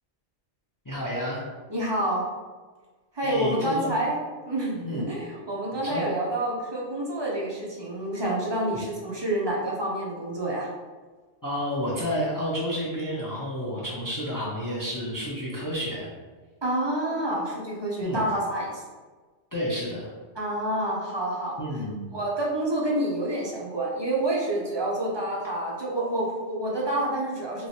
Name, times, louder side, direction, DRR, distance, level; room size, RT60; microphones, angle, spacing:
voice 1, 0.9-1.4 3.2-3.9 4.8-5.0 5.8-6.0 11.4-16.1 18.0-18.2 19.5-20.1 21.6-22.2, equal, 30° left, -6 dB, 0.4 m, -30 dB
voice 2, 1.7-2.2 3.1-4.2 4.4-10.7 16.6-18.8 20.3-21.6 22.1-27.7, right 1 dB, 35° right, -4 dB, 0.4 m, -28 dB
3.1 x 3.0 x 2.8 m, 1.4 s
omnidirectional pair, 1.2 m